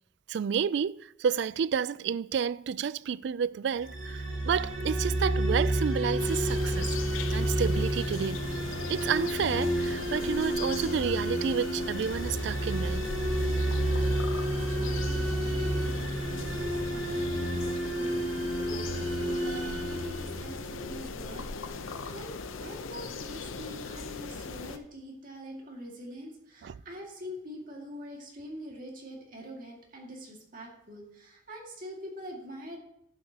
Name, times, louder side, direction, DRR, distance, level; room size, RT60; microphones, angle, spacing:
voice 1, 0.3-7.0 7.3-8.4 8.9-13.1 26.6-26.7, right 7 dB, 60° right, 0.3 m, -30 dB
sound 1, 3.8-20.9, right 1 dB, 80° right, 3.1 m, -30 dB
sound 2, 6.2-24.8, left 4 dB, 90° left, 0.8 m, -39 dB
voice 2, 14.5-21.5 22.1-32.8, equal, 45° right, 2.1 m, -44 dB
12.0 x 9.0 x 2.9 m
head